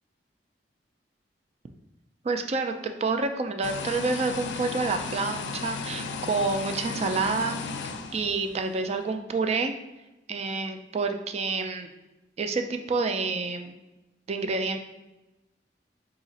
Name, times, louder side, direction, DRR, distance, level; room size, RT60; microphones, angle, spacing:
voice 1, 2.2-7.6 8.1-9.8 10.3-11.9 12.4-13.7 14.3-14.8, right 4 dB, 35° right, 6 dB, 0.3 m, -28 dB
sound 1, 3.6-8.8, left 5 dB, 80° left, 0.4 m, -35 dB
3.9 x 2.4 x 4.0 m, 1.0 s
head